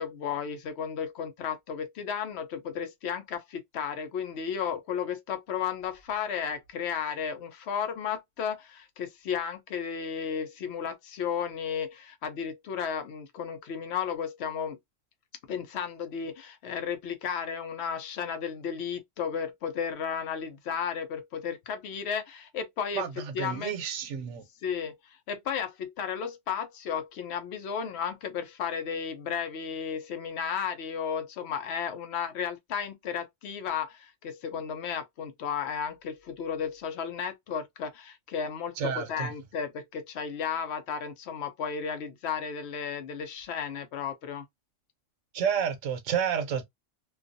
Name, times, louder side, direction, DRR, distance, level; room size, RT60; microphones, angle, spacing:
voice 1, 0.0-14.8 15.5-23.0 23.3-23.8 24.6-44.5, left 7 dB, 65° left, 0.8 m, -34 dB
voice 2, 23.0-24.4 38.8-39.3 45.3-46.7, right 7 dB, 75° right, 0.9 m, -30 dB
2.4 x 2.3 x 2.5 m
omnidirectional pair, 1.3 m